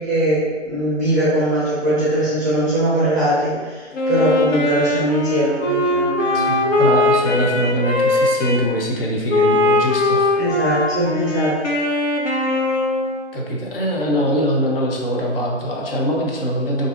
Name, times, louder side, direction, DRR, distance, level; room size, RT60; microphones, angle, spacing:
voice 1, 0.0-6.7 10.4-11.6, right 1 dB, 15° right, -10 dB, 0.6 m, -21 dB
Wind instrument woodwind instrument, 3.9-8.6 9.3-13.2, left 2 dB, 90° left, 0.7 m, -20 dB
voice 2, 6.3-10.4 13.3-16.9, equal, 50° left, -1 dB, 0.7 m, -22 dB
3.3 x 2.7 x 2.4 m, 1.4 s
figure-of-eight pair, 150°, 36 cm